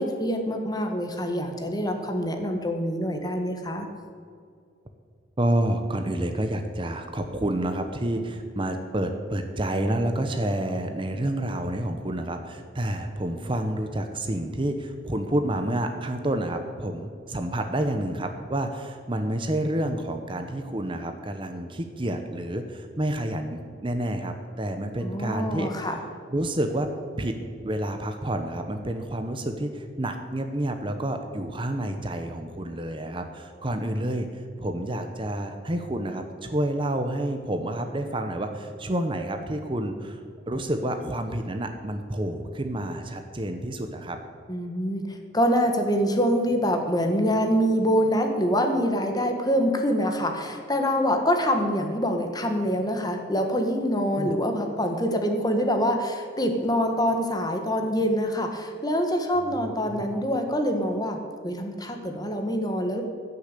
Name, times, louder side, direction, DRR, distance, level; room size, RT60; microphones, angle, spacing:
voice 1, 0.0-3.9 25.0-26.0 44.5-61.2 61.4-63.0, equal, 20° left, 4 dB, 1.5 m, -25 dB
voice 2, 5.4-25.9 26.3-26.9 27.2-27.4 27.6-34.3 34.6-44.2 54.2-54.3 59.8-60.3, right 1 dB, 25° right, 6 dB, 0.8 m, -29 dB
15.5 x 6.7 x 8.3 m, 2.2 s
head